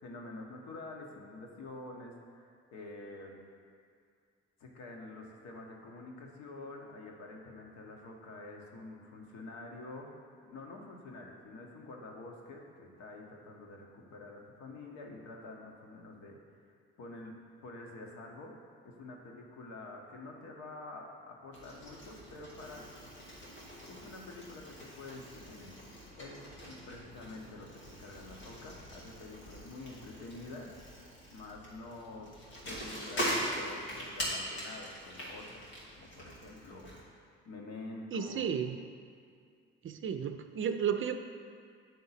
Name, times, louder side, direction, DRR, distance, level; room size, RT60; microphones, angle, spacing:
voice 1, 0.0-3.4 4.6-10.1 10.4-16.4 17.0-17.3 17.6-18.5 18.8-22.9 23.9-25.8 26.2-32.3 32.6-35.6 35.9-38.5, left 2 dB, 65° left, 0 dB, 1.1 m, -48 dB
Bicycle, 21.5-37.0, equal, 90° left, 1.2 m, -42 dB
voice 2, 38.1-38.8 39.8-41.2, right 7 dB, 45° right, 7 dB, 0.5 m, -33 dB
8.3 x 3.8 x 4.1 m, 2.2 s
hypercardioid pair, 50°, 30 cm